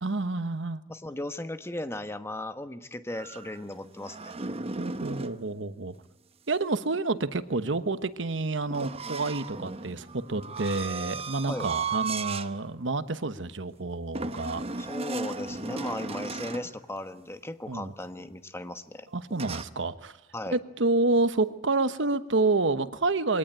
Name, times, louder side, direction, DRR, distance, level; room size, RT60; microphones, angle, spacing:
voice 1, 0.0-0.8 4.8-6.0 6.5-14.6 17.7-17.9 19.1-20.2 20.5-23.4, right 3 dB, 80° right, 12 dB, 1.2 m, -28 dB
voice 2, 0.9-4.3 11.5-11.7 14.8-19.1 20.3-20.6, left 1 dB, 15° left, 10 dB, 1.1 m, -36 dB
sound 1, 3.1-5.4 8.7-12.5 13.0-13.2 14.1-16.7 19.3-19.6, right 4 dB, 35° right, 0.9 m, -35 dB
23.5 x 18.0 x 8.9 m, 0.93 s
head